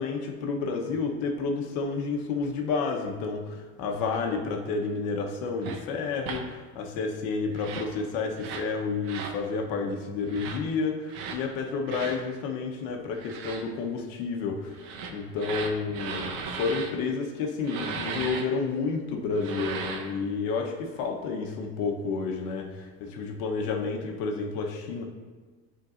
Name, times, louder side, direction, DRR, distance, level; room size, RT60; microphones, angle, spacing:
voice 1, 0.0-25.0, left 4 dB, 70° left, 2 dB, 1.1 m, -30 dB
sound 1, 5.6-5.8 6.2-6.4 7.5-7.9 8.4-8.7 9.0-9.4 10.3-10.6 11.1-11.4 11.9-12.2 13.1-13.6 14.7-16.9 17.6-18.4 19.3-20.1, right 5 dB, 65° right, 0.9 m, -36 dB
9.7 x 3.8 x 2.5 m, 1.4 s
supercardioid pair, 105°, 36 cm